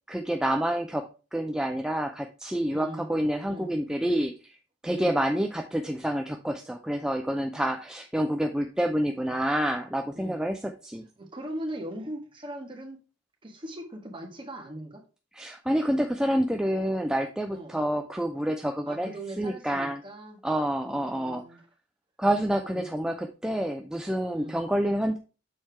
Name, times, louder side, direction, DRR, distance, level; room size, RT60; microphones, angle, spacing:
voice 1, 0.1-4.6 4.8-11.0 15.3-19.1 19.4-20.0 20.4-21.4 22.2-25.2, right 1 dB, 5° right, 4 dB, 0.4 m, -28 dB
voice 2, 2.7-3.1 3.4-3.7 4.9-5.2 10.1-10.4 11.2-13.0 13.4-15.0 17.5-17.8 18.8-20.4 20.8-21.6 22.7-22.9 24.3-24.6, right 1 dB, 25° right, 2 dB, 1.5 m, -40 dB
6.6 x 4.4 x 4.5 m, 0.33 s
head